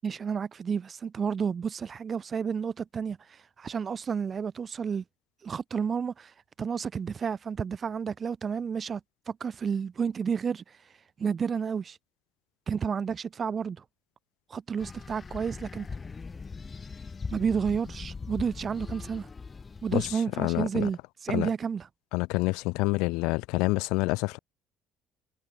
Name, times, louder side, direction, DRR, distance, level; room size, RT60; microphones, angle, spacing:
voice 1, 0.0-5.0 5.4-9.0 9.3-10.9 11.2-12.0 12.7-13.8 14.5-15.9 17.3-19.3 19.8-21.9, right 6 dB, 35° right, 7.0 m, -31 dB
sound 1, 14.8-20.2, left 4 dB, 25° left, 6.7 m, -40 dB
voice 2, 20.4-20.9 21.3-21.5 22.1-24.4, left 24 dB, 85° left, 3.3 m, -27 dB
cardioid pair, 115°, 0 cm